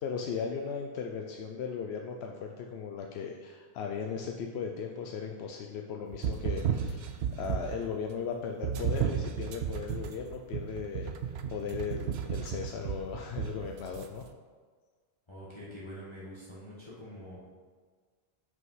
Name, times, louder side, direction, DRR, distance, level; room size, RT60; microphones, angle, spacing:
voice 1, 0.0-11.1 11.5-14.2, left 6 dB, 85° left, 2 dB, 0.9 m, -37 dB
sound 1, 6.1-7.9 8.6-14.1, right 8 dB, 80° right, 0.9 m, -33 dB
voice 2, 15.3-17.5, equal, 25° left, -8 dB, 1.5 m, -45 dB
6.3 x 5.4 x 5.5 m, 1.5 s
omnidirectional pair, 1.1 m